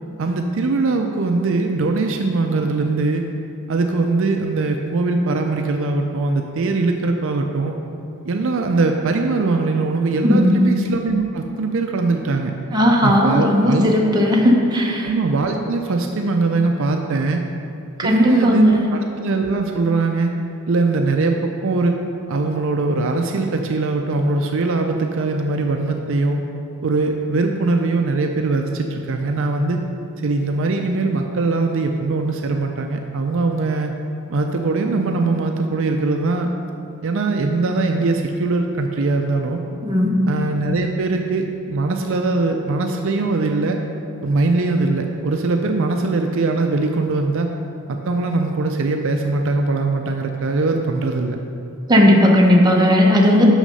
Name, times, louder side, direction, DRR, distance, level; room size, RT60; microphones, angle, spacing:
voice 1, 0.2-3.2 3.7-7.8 8.3-12.5 13.0-13.8 15.0-17.4 18.0-20.3 20.7-21.9 22.3-26.4 26.8-29.8 30.2-33.9 34.3-36.5 37.0-39.6 40.3-43.8 44.2-47.5 47.9-51.4, right 3 dB, 65° right, 4 dB, 0.5 m, -21 dB
voice 2, 10.2-10.6 12.7-15.1 18.0-18.9 39.8-40.1 51.9-53.5, left 1 dB, 20° right, -1 dB, 0.9 m, -15 dB
6.5 x 6.1 x 5.4 m, 2.7 s
head